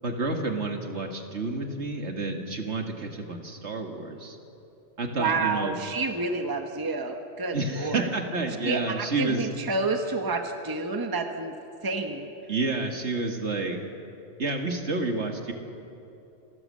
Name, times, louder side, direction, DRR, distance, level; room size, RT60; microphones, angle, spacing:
voice 1, 0.0-4.4 5.0-5.7 7.5-9.5 12.5-13.8 14.4-15.5, right 3 dB, 60° right, 3 dB, 2.2 m, -29 dB
voice 2, 5.2-8.1 8.6-11.6 11.8-12.3, right 3 dB, 20° right, 5 dB, 1.1 m, -29 dB
27.5 x 14.0 x 7.6 m, 2.8 s
omnidirectional pair, 1.3 m